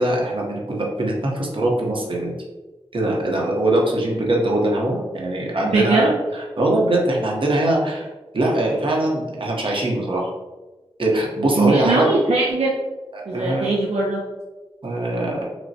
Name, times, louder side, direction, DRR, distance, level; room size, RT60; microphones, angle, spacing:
voice 1, 0.0-2.3 2.9-6.1 6.6-8.1 8.3-10.3 11.0-12.1 13.1-13.7 14.8-15.4, right 1 dB, 55° right, -2 dB, 0.9 m, -22 dB
voice 2, 5.6-6.2 11.5-12.8 13.3-14.2, right 3 dB, 80° right, -3 dB, 0.6 m, -20 dB
6.0 x 2.1 x 2.7 m, 1.2 s
wide cardioid pair, 90°, 10 cm